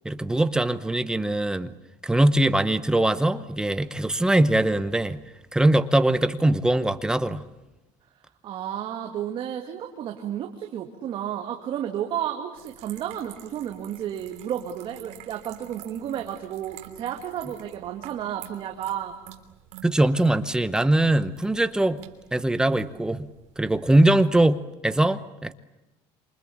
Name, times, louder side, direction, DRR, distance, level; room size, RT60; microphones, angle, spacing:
voice 1, 0.0-1.7 2.0-5.2 5.5-7.4 19.8-22.0 22.3-23.3 23.6-25.5, right 1 dB, 5° right, 12 dB, 0.9 m, -22 dB
voice 2, 8.4-19.2, right 10 dB, 40° right, 3 dB, 2.2 m, -32 dB
sound 1, 12.6-24.4, right 13 dB, 60° right, 3.5 m, -49 dB
27.5 x 24.5 x 8.6 m, 1.0 s
cardioid pair, 165°, 13 cm